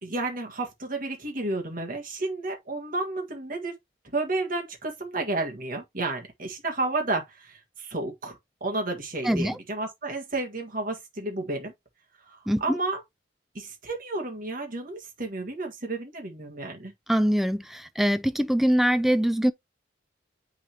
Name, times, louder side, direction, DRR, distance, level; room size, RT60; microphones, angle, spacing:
voice 1, 0.0-3.8 4.1-11.7 12.3-13.0 13.6-16.9, right 2 dB, 45° right, 1.7 m, -31 dB
voice 2, 12.5-12.8 17.1-19.5, equal, ahead, 0.4 m, -23 dB
9.1 x 3.9 x 2.9 m
head